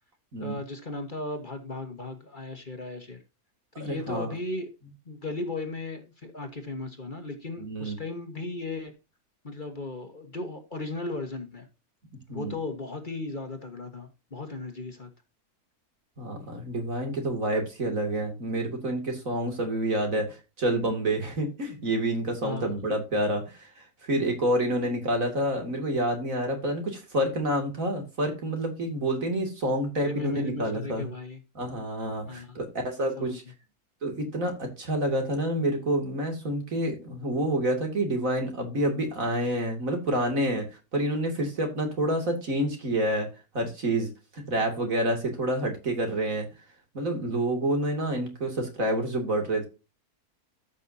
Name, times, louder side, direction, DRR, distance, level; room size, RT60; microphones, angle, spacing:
voice 1, 0.4-3.2 3.8-4.7 5.1-8.9 9.4-11.7 12.3-15.1 22.4-22.7 30.0-31.4 32.3-32.6 33.0-33.4, left 2 dB, 35° left, 6 dB, 1.6 m, -36 dB
voice 2, 3.8-4.3 7.6-8.0 12.3-12.5 16.2-23.4 24.1-31.0 31.5-33.4 34.0-40.7 40.9-43.3 43.5-46.5 46.9-49.7, right 1 dB, 65° right, 3 dB, 3.0 m, -28 dB
14.0 x 6.4 x 2.7 m, 0.28 s
omnidirectional pair, 1.6 m